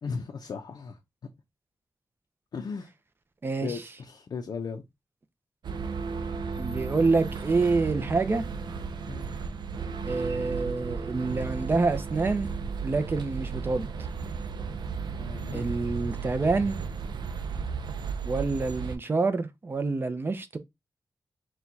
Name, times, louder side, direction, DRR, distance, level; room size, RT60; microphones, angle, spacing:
voice 1, 0.0-1.0 2.5-2.9 3.6-4.8 9.1-9.3 15.1-15.7, left 5 dB, 70° left, 0.5 m, -36 dB
voice 2, 3.4-3.8 6.6-8.4 10.0-12.5 12.8-13.9 15.5-16.8 18.2-20.6, right 3 dB, 30° right, 0.5 m, -27 dB
sound 1, 5.6-19.0, right 5 dB, 80° right, 0.5 m, -34 dB
4.4 x 2.3 x 3.8 m
wide cardioid pair, 155°, 7 cm